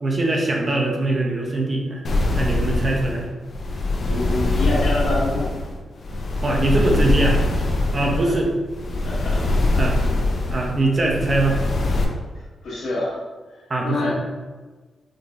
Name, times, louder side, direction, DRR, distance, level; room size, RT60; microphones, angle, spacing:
voice 1, 0.0-2.0 2.3-3.2 6.4-7.4 7.9-8.5 9.8-9.9 10.5-11.6 13.7-14.1, right 2 dB, 30° right, 0 dB, 0.7 m, -22 dB
sound 1, 2.0-12.0, left 2 dB, 50° left, 0.5 m, -23 dB
voice 2, 4.0-5.5 9.0-9.4 9.7-9.8 12.6-13.2 13.5-14.1, left 2 dB, 90° left, -6 dB, 1.5 m, -26 dB
5.0 x 2.5 x 3.1 m, 1.3 s
wide cardioid pair, 140°, 0 cm